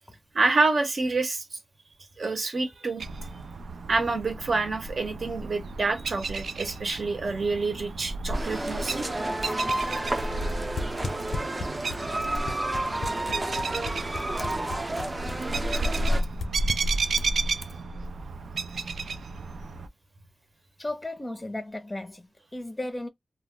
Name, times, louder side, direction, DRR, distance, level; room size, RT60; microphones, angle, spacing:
voice 1, 0.3-1.6 2.2-3.0 3.9-9.1, right 3 dB, 60° right, 0.8 m, -27 dB
sound 1, 3.0-19.9, right 3 dB, 85° right, 0.3 m, -33 dB
sound 2, 8.3-16.2, right 1 dB, 30° right, 0.5 m, -31 dB
sound 3, 9.4-17.3, left 3 dB, 75° left, 0.5 m, -34 dB
voice 2, 15.4-15.9 16.2-16.4 17.2-17.3 20.8-23.1, left 1 dB, 20° left, 0.5 m, -36 dB
2.3 x 2.0 x 3.6 m
wide cardioid pair, 80°, 0 cm